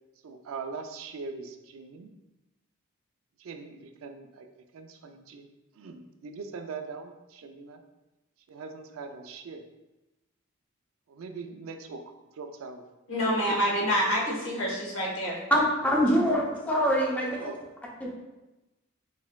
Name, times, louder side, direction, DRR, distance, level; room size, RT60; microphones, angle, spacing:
voice 1, 0.2-2.2 3.4-4.5 4.7-5.5 5.7-7.8 8.5-9.6 11.1-12.9 13.5-13.8 17.3-17.6, right 4 dB, 85° right, 6 dB, 0.4 m, -41 dB
voice 2, 13.1-15.4, equal, 70° left, -3 dB, 1.1 m, -27 dB
voice 3, 15.5-17.4 18.0-18.1, equal, 5° left, -3 dB, 0.6 m, -24 dB
4.1 x 3.3 x 2.2 m, 1.0 s
head